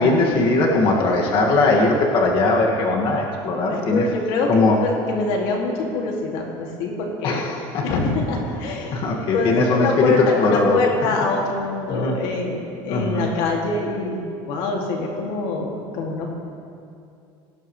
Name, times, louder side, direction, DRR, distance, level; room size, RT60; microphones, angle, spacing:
voice 1, 0.0-4.0 4.5-4.8 7.2-7.8 8.9-10.1 10.4-10.8 11.9-12.1 12.9-13.3, left 2 dB, 50° left, -2 dB, 2.1 m, -19 dB
voice 2, 3.7-7.5 7.8-16.3, left 3 dB, 80° left, -1 dB, 2.5 m, -25 dB
18.5 x 18.0 x 3.3 m, 2.5 s
cardioid pair, 130°, 11 cm